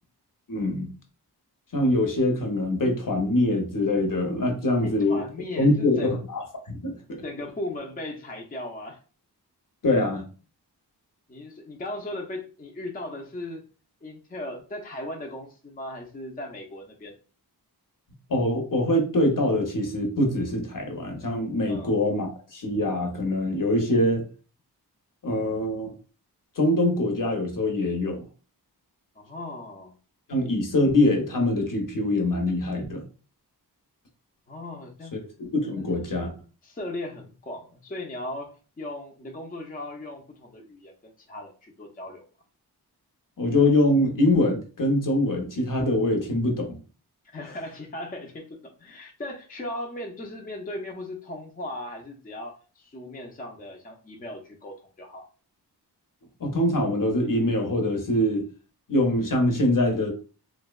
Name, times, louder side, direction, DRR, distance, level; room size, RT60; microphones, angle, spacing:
voice 1, 0.5-0.9 1.7-5.2 5.6-7.2 9.8-10.2 18.3-24.3 25.2-25.9 26.6-28.2 30.3-33.0 35.4-36.3 43.4-46.8 56.4-58.5 58.9-60.1, left 1 dB, 50° left, 0.7 m, -24 dB
voice 2, 4.8-6.1 7.2-9.0 11.3-13.7 14.0-17.2 21.6-21.9 29.2-30.0 34.5-35.2 35.7-35.9 36.6-40.9 41.3-42.3 47.2-55.2, left 1 dB, 20° left, 0.4 m, -37 dB
2.6 x 2.1 x 2.3 m
wide cardioid pair, 60°, 40 cm